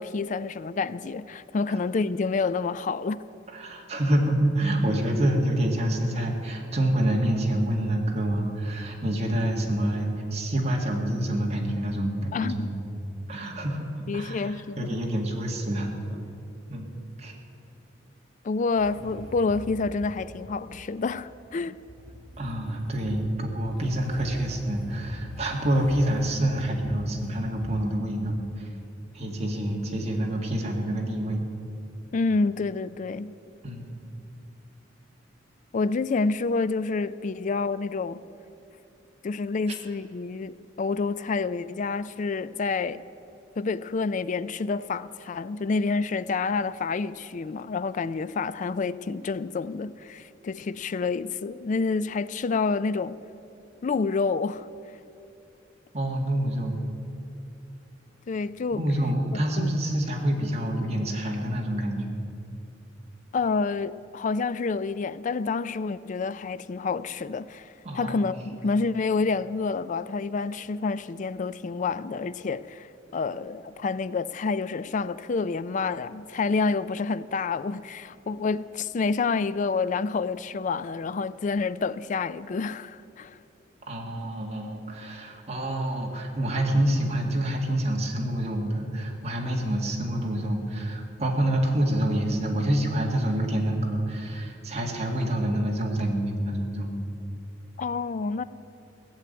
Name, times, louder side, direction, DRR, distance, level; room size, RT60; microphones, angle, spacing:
voice 1, 0.0-3.2 12.3-12.7 14.1-15.0 18.4-21.8 32.1-33.3 35.7-38.2 39.2-43.0 43.6-53.2 53.8-54.7 58.3-58.8 59.3-59.8 63.3-72.9 73.1-83.4 97.8-98.4, left 4 dB, 40° left, 0.4 m, -28 dB
voice 2, 3.5-12.7 13.3-13.9 14.1-15.9 16.7-16.9 17.2-17.3 22.4-28.7 29.1-31.4 33.6-34.0 55.9-56.8 58.7-62.1 67.8-68.2 83.9-96.9, right 1 dB, 35° right, 2.0 m, -27 dB
Motorcycle / Engine starting, 18.8-27.8, equal, ahead, 4.2 m, -43 dB
16.5 x 7.2 x 9.4 m
head